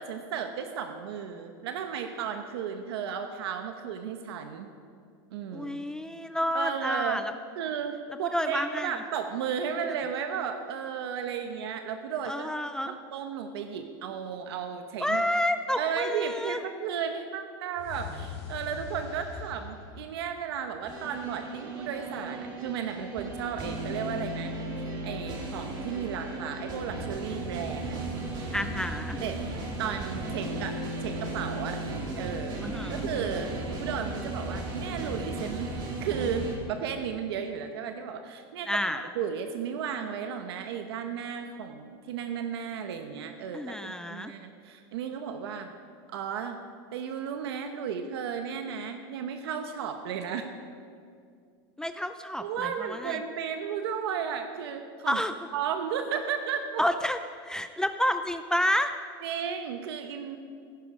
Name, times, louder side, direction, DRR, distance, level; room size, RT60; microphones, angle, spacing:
voice 1, 0.0-4.7 5.3-5.9 6.5-7.2 7.6-7.9 8.2-12.5 12.9-15.2 15.8-24.5 25.0-28.0 29.2-31.8 32.2-32.6 32.9-33.5 33.8-45.7 46.1-46.6 46.9-50.5 52.4-55.2 55.5-56.8 59.2-60.4, right 7 dB, 85° right, 6 dB, 1.1 m, -34 dB
voice 2, 5.5-7.2 8.3-8.9 12.2-12.9 15.0-16.6 28.5-29.2 32.6-33.0 38.7-39.1 43.5-44.3 51.8-53.2 55.1-55.3 56.8-58.9, left 1 dB, 5° left, 8 dB, 0.4 m, -29 dB
sound 1, 17.8-20.9, left 6 dB, 80° left, 3.2 m, -42 dB
sound 2, 20.9-36.6, right 2 dB, 35° right, 3.2 m, -35 dB
16.0 x 14.0 x 4.9 m, 2.3 s
supercardioid pair, 140°, 13 cm